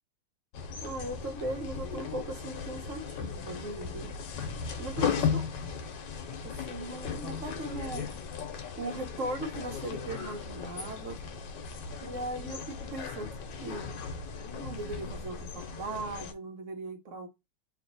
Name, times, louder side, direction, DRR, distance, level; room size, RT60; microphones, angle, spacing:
sound 1, 0.5-16.3, left 6 dB, 85° left, 1.4 m, -36 dB
voice 1, 0.8-4.1 4.7-5.4 6.4-8.1 8.7-11.2 12.0-13.3 13.6-13.9 14.6-17.3, right 2 dB, 55° right, 1.1 m, -38 dB
3.2 x 2.7 x 3.9 m
omnidirectional pair, 1.9 m